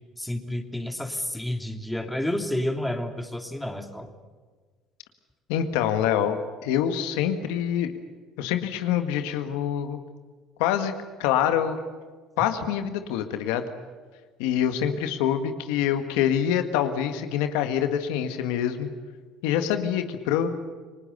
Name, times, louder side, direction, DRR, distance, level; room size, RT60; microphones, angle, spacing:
voice 1, 0.2-4.1, left 1 dB, 5° left, 5 dB, 2.9 m, -30 dB
voice 2, 5.5-7.9 8.4-10.0 10.6-10.9 11.2-11.8 12.4-13.7 14.4-18.9 19.4-20.5, left 9 dB, 85° left, 7 dB, 1.8 m, -25 dB
29.0 x 19.5 x 6.8 m, 1.5 s
supercardioid pair, 85°, 0 cm